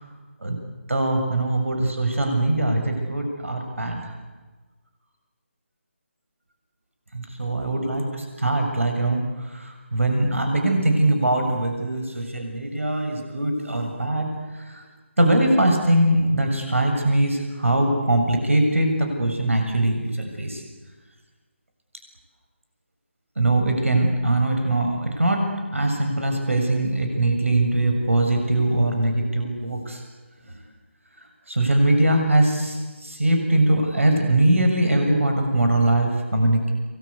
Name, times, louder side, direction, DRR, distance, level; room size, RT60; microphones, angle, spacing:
voice 1, 0.9-4.0 7.1-9.2 9.5-14.3 14.7-14.8 15.2-20.6 23.4-25.5 25.7-30.0 31.5-36.7, right 1 dB, 90° right, 4 dB, 7.0 m, -21 dB
28.0 x 22.0 x 8.3 m, 1.3 s
figure-of-eight pair, 165°, 7 cm